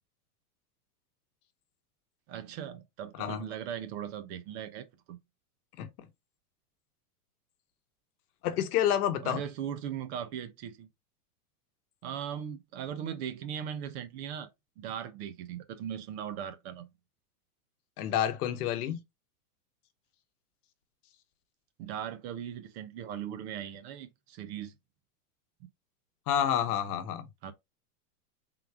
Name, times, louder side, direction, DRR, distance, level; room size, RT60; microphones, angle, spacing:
voice 1, 2.3-5.2 9.2-10.9 12.0-14.5 14.8-16.9 21.8-24.7 25.6-25.7 27.4-27.5, right 9 dB, 45° right, 0.6 m, -39 dB
voice 2, 8.4-9.4 18.0-19.0 26.3-27.3, left 10 dB, 70° left, 1.0 m, -29 dB
3.8 x 2.3 x 4.5 m
supercardioid pair, 145°, 47 cm